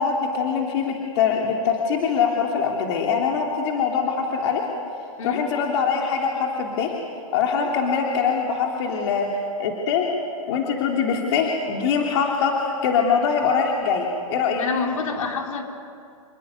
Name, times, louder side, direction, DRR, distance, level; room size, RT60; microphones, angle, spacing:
voice 1, 0.0-4.6 5.2-6.9 7.3-10.1 10.5-12.5 12.8-14.6, left 6 dB, 45° left, 0 dB, 3.3 m, -23 dB
voice 2, 14.6-15.6, left 5 dB, 70° left, 2 dB, 5.0 m, -27 dB
28.0 x 20.5 x 9.7 m, 2.3 s
hypercardioid pair, 145°, 18 cm